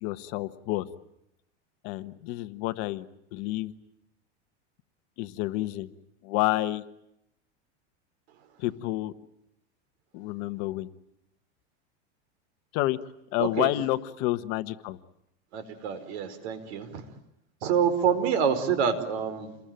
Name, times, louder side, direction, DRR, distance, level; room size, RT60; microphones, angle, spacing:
voice 1, 0.0-0.9 1.8-3.1 3.3-3.7 5.2-5.9 6.2-6.8 8.6-9.1 10.1-10.9 12.7-13.0 13.3-15.0, left 17 dB, 50° left, 11 dB, 1.4 m, -29 dB
voice 2, 13.4-13.7 15.5-17.0 17.6-19.6, right 7 dB, 65° right, 12 dB, 4.7 m, -27 dB
28.5 x 22.0 x 9.1 m, 0.80 s
supercardioid pair, 150°, 34 cm